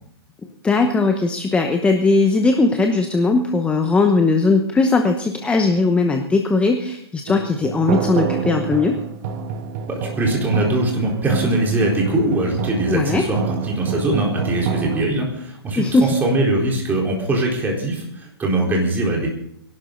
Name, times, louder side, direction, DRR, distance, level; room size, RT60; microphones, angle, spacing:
voice 1, 0.6-9.0 12.9-13.2 15.8-16.1, left 3 dB, 10° left, 6 dB, 0.9 m, -18 dB
sound 1, 7.3-15.0, right 6 dB, 40° right, 1.6 m, -27 dB
voice 2, 9.9-19.4, right 1 dB, 15° right, -1 dB, 4.1 m, -22 dB
22.0 x 12.0 x 4.0 m, 0.73 s
hypercardioid pair, 135°, 13 cm